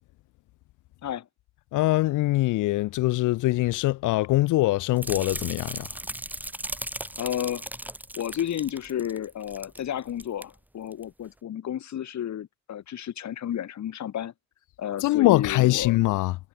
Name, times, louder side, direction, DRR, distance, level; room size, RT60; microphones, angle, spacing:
voice 1, 1.7-6.0 15.0-16.4, left 18 dB, 85° left, 0.6 m, -23 dB
sound 1, 5.0-9.8 10.1-10.4 10.9-11.0, right 1 dB, 5° right, 1.4 m, -37 dB
voice 2, 7.2-7.7 8.1-14.3 14.8-16.0, left 10 dB, 65° left, 6.2 m, -32 dB
cardioid pair, 90°, 30 cm